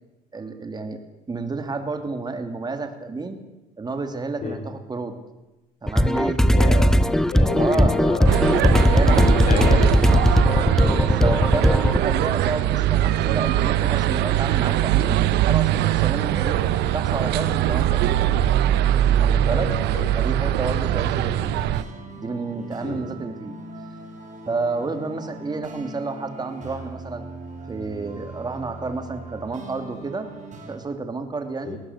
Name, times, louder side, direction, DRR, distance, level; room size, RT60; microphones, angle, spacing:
voice 1, 0.3-1.0 1.3-3.4 3.8-5.1 5.8-6.7 7.6-8.0 8.8-9.6 10.8-16.6 16.9-18.3 19.2-19.7 20.1-21.7 22.2-23.5 24.5-27.3 27.7-30.3 30.7-31.8, right 3 dB, 25° right, 7 dB, 3.0 m, -30 dB
sound 1, 5.9-12.0, equal, 5° left, 0.8 m, -18 dB
voice 2, 6.6-6.9 7.3-11.0 19.5-20.1 20.6-20.8 22.8-23.0 31.6-31.8, left 4 dB, 50° left, 3 dB, 5.0 m, -30 dB
sound 2, 8.3-21.8, right 12 dB, 85° right, 1.0 m, -21 dB
sound 3, 21.0-30.8, right 2 dB, 45° right, 6.9 m, -39 dB
19.5 x 18.5 x 8.2 m, 1.0 s
cardioid pair, 110°, 17 cm